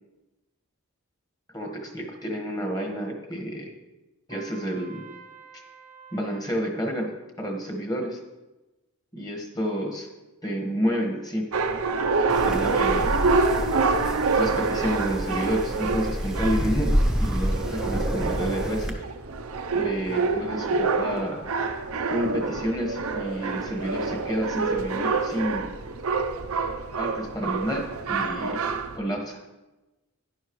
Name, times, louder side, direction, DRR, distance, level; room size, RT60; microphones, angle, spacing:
voice 1, 1.5-3.7 4.3-5.0 6.1-8.2 9.1-10.1 10.4-11.5 12.4-13.7 14.4-19.0 19.7-21.5 22.1-25.7 27.0-28.6 28.9-29.4, equal, 15° left, 2 dB, 1.4 m, -30 dB
Trumpet, 4.3-6.5, right 6 dB, 35° right, 0.7 m, -48 dB
sound 1, 11.5-29.0, right 4 dB, 75° right, 0.7 m, -27 dB
Wind, 12.3-18.9, equal, 5° right, 0.8 m, -28 dB
11.5 x 10.5 x 3.1 m, 1.1 s
head